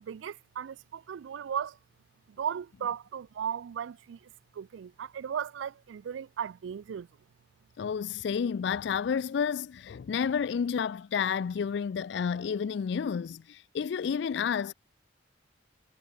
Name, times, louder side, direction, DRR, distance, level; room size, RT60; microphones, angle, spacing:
voice 1, 0.0-1.8 2.4-4.2 4.6-7.1, right 8 dB, 80° right, 0.3 m, -36 dB
voice 2, 7.8-14.7, left 7 dB, 65° left, 0.3 m, -30 dB
head